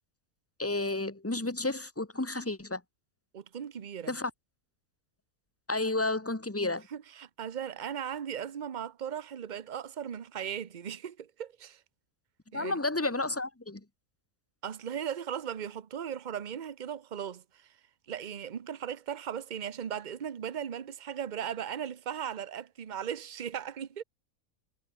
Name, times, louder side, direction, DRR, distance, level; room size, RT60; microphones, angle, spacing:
voice 1, 0.6-2.8 4.1-4.3 5.7-6.9 12.5-13.8, left 2 dB, 10° left, 1.7 m, -31 dB
voice 2, 3.3-4.2 6.9-11.8 12.5-12.8 14.6-17.7 18.1-24.0, right 8 dB, 40° right, 0.9 m, -37 dB
omnidirectional pair, 1.5 m